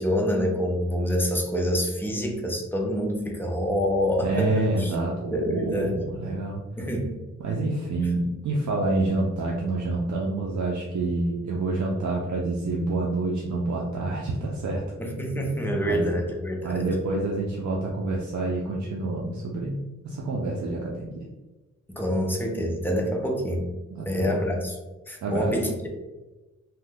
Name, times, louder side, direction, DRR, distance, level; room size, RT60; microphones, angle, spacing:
voice 1, 0.0-4.9 5.3-6.0 6.8-7.1 15.0-16.9 21.9-23.7 24.1-24.8 25.1-25.9, equal, 5° left, 1 dB, 0.4 m, -26 dB
voice 2, 4.2-6.6 7.4-14.8 15.9-16.1 16.6-19.8 20.0-21.3 23.9-24.4 25.2-25.6, right 2 dB, 70° right, -3 dB, 0.5 m, -27 dB
2.7 x 2.1 x 3.4 m, 1.1 s
wide cardioid pair, 165°, 31 cm